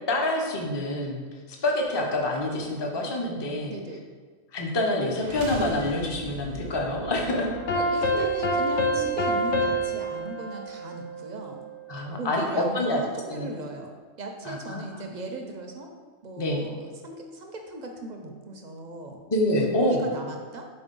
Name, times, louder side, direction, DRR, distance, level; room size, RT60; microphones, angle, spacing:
voice 1, 0.1-1.2 1.6-3.7 4.5-7.5 8.1-8.3 11.9-13.0 13.3-13.5 14.5-15.1 16.4-16.6 19.3-20.0, left 1 dB, 25° left, 0 dB, 0.6 m, -26 dB
voice 2, 3.7-4.1 7.7-11.6 12.1-13.9 14.2-15.9 16.2-19.2 19.8-20.7, right 2 dB, 50° right, 3 dB, 0.6 m, -38 dB
sound 1, 5.1-9.1, right 5 dB, 80° right, 1.0 m, -41 dB
sound 2, 7.5-11.7, equal, 65° left, 0.9 m, -27 dB
4.4 x 4.1 x 5.3 m, 1.5 s
omnidirectional pair, 1.4 m